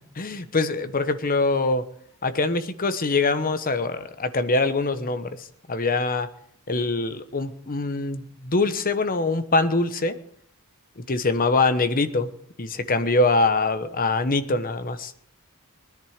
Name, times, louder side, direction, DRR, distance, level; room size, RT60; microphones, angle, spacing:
voice 1, 0.2-1.8 2.2-6.3 6.7-10.2 11.0-12.3 12.6-15.1, left 3 dB, 40° left, 11 dB, 1.1 m, -24 dB
20.5 x 10.5 x 5.0 m, 0.63 s
head